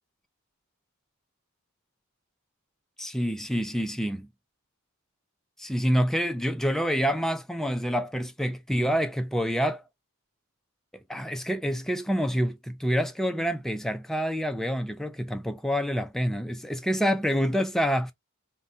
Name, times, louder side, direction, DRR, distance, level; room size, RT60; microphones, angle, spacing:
voice 1, 3.0-4.3 5.6-9.8 11.1-18.1, equal, ahead, 0.3 m, -27 dB
2.6 x 2.1 x 2.5 m
head